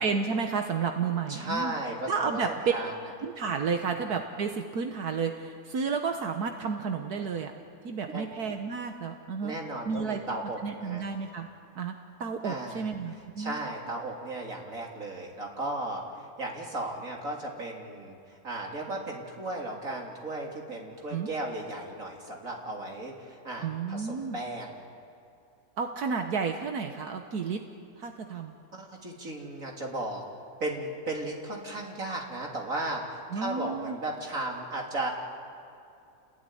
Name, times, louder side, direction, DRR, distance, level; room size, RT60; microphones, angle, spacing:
voice 1, 0.0-1.7 2.1-2.5 3.2-7.5 7.8-9.5 9.9-10.2 10.6-11.5 11.8-11.9 12.2-13.6 21.1-21.3 23.6-24.4 25.8-27.6 28.0-28.5 33.3-34.0, right 5 dB, 75° right, 5 dB, 1.7 m, -31 dB
voice 2, 1.3-2.4 2.7-2.9 8.1-8.3 9.4-11.0 12.4-24.7 28.7-30.2 30.6-35.1, right 2 dB, 55° right, 0 dB, 3.4 m, -35 dB
29.0 x 20.0 x 9.9 m, 2.6 s
omnidirectional pair, 1.7 m